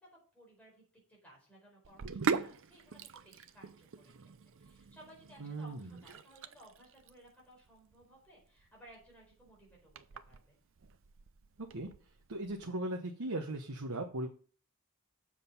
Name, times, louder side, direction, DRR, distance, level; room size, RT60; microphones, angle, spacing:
voice 1, 0.0-10.6, right 1 dB, 5° left, -3 dB, 4.6 m, -60 dB
Sink (filling or washing), 1.8-12.7, right 5 dB, 60° right, 0.6 m, -42 dB
voice 2, 5.4-5.9 11.7-11.9 12.3-14.3, right 1 dB, 80° right, 3 dB, 1.0 m, -38 dB
7.4 x 6.3 x 5.6 m, 0.41 s
head